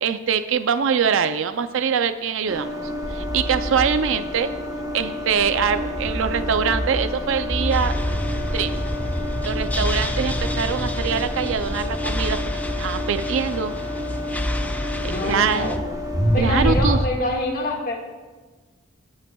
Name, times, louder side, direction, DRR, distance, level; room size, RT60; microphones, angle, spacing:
voice 1, 0.0-2.7 3.1-4.5 4.9-8.0 8.5-8.7 9.4-12.4 12.8-13.7 15.0-15.8 16.4-17.0, right 6 dB, 60° right, 10 dB, 0.4 m, -23 dB
sound 1, 2.5-17.1, left 1 dB, 15° right, 0.9 m, -27 dB
sound 2, 7.7-15.8, left 1 dB, 5° left, 0.4 m, -29 dB
voice 2, 14.9-15.8 16.3-18.0, left 1 dB, 45° left, 0 dB, 1.7 m, -26 dB
19.0 x 8.8 x 2.3 m, 1.3 s
head